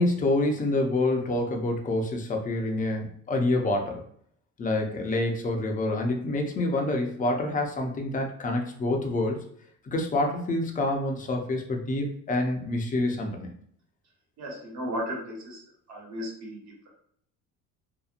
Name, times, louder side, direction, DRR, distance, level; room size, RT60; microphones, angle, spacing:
voice 1, 0.0-4.0 4.6-9.4 9.8-13.5, left 2 dB, 25° left, 2 dB, 0.5 m, -27 dB
voice 2, 14.4-15.6 15.9-16.6, equal, 60° right, -2 dB, 1.2 m, -34 dB
2.8 x 2.2 x 2.4 m, 0.64 s
cardioid pair, 115°, 31 cm